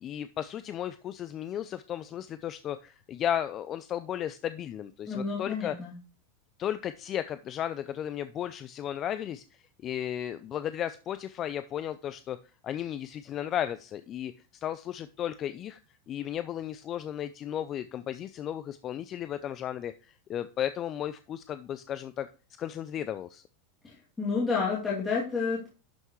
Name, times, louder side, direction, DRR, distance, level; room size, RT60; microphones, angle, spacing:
voice 1, 0.0-5.8 6.6-9.4 9.8-12.4 12.6-15.8 16.1-22.3 22.6-23.4, left 10 dB, 35° left, 12 dB, 0.4 m, -34 dB
voice 2, 5.1-5.9 23.8-25.7, left 5 dB, 15° left, -7 dB, 2.6 m, -30 dB
11.5 x 5.7 x 3.1 m, 0.34 s
supercardioid pair, 130°, 0 cm